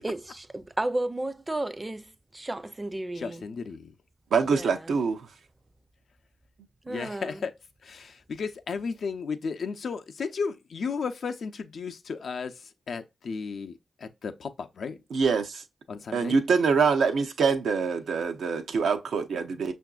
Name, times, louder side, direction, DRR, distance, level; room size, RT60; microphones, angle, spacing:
voice 1, 0.0-3.4 4.5-5.0 6.8-7.5, right 1 dB, 25° right, 0.5 m, -33 dB
voice 2, 3.2-3.9 6.9-7.5 7.8-12.5 12.9-15.0 15.9-16.4, left 5 dB, 75° left, 0.5 m, -34 dB
voice 3, 4.3-5.2 15.1-15.6 16.1-19.7, right 5 dB, 85° right, 0.6 m, -25 dB
5.8 x 2.6 x 2.3 m
cardioid pair, 50°, 0 cm